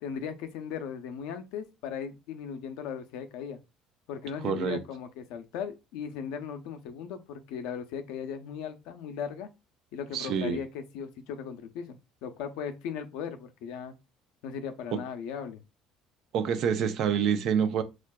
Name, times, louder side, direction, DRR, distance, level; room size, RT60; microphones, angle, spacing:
voice 1, 0.0-3.6 4.1-9.5 9.9-13.9 14.4-15.6, left 7 dB, 80° left, 0.6 m, -37 dB
voice 2, 4.4-4.8 10.1-10.6 16.3-17.8, right 7 dB, 65° right, 0.6 m, -27 dB
4.5 x 2.4 x 2.2 m
supercardioid pair, 95°, 0 cm